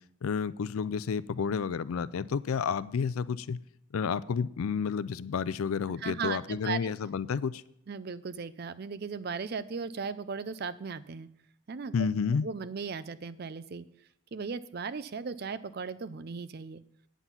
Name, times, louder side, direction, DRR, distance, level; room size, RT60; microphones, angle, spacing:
voice 1, 0.2-3.6 3.9-7.6 11.9-12.5, left 6 dB, 85° left, 0.4 m, -30 dB
voice 2, 6.0-6.9 7.9-11.3 11.7-12.1 12.4-13.9 14.3-16.8, right 5 dB, 50° right, 0.4 m, -37 dB
9.1 x 8.1 x 5.7 m
head